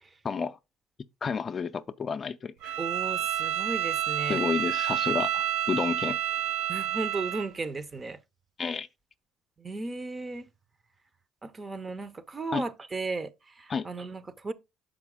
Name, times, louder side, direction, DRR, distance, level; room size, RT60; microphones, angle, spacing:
voice 1, 0.2-0.6 1.2-2.8 4.3-6.2 8.6-8.9 12.5-12.6 13.7-13.9, left 5 dB, 35° left, 0.4 m, -30 dB
Bowed string instrument, 2.6-7.5, right 11 dB, 80° right, 0.5 m, -29 dB
voice 2, 2.8-4.4 6.7-8.2 9.6-10.5 11.4-14.5, right 3 dB, 25° right, 0.6 m, -35 dB
6.1 x 4.9 x 3.6 m
supercardioid pair, 95°, 0 cm